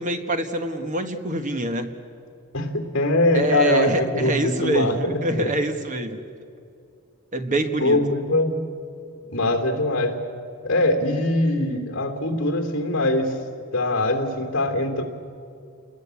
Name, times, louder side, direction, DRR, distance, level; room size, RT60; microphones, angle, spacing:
voice 1, 0.0-2.0 3.3-6.2 7.3-8.1, right 2 dB, 35° right, 7 dB, 1.3 m, -25 dB
voice 2, 2.5-5.5 7.8-8.6 9.3-10.2 10.6-13.3 13.7-15.0, left 1 dB, 55° left, 5 dB, 3.2 m, -22 dB
29.5 x 20.5 x 8.4 m, 2.5 s
head